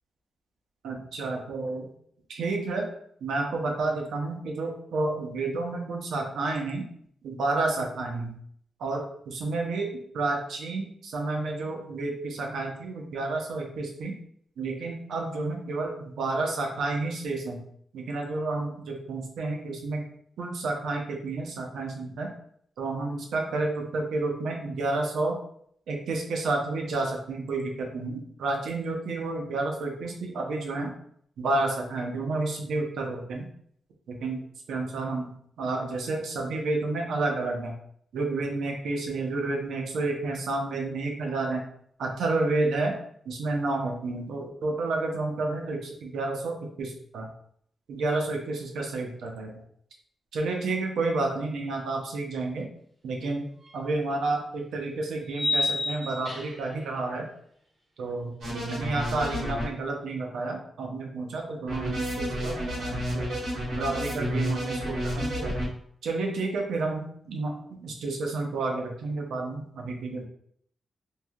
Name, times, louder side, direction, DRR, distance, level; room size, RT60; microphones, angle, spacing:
voice 1, 0.8-1.9 2.3-2.9 3.2-6.8 7.2-8.4 8.8-9.9 10.1-14.1 14.6-17.6 17.9-20.0 20.4-22.3 22.8-25.4 25.9-30.9 31.4-33.5 34.1-34.4 34.7-35.3 35.6-37.7 38.1-41.6 42.0-43.0 43.3-47.3 47.9-49.5 50.3-52.7 53.0-53.4 53.7-57.3 58.0-63.3 63.7-65.6 66.0-70.3, right 3 dB, 85° right, 2 dB, 0.6 m, -30 dB
sound 1, 53.7-53.8 55.3-56.8, left 2 dB, 30° right, 1.0 m, -29 dB
sound 2, 58.4-59.6 61.7-65.6, equal, 70° right, 1.3 m, -30 dB
3.1 x 2.6 x 2.3 m, 0.65 s
wide cardioid pair, 170°, 0 cm